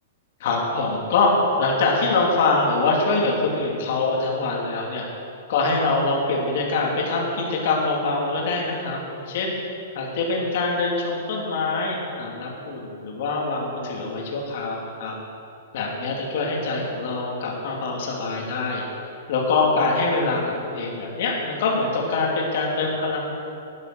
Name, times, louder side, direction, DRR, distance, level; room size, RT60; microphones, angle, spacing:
voice 1, 0.4-1.3 1.6-5.1 5.5-9.6 9.9-15.1 15.7-18.9 19.3-23.2, left 3 dB, 45° left, -2 dB, 2.6 m, -24 dB
11.0 x 10.5 x 6.2 m, 2.7 s
hypercardioid pair, 175°, 0 cm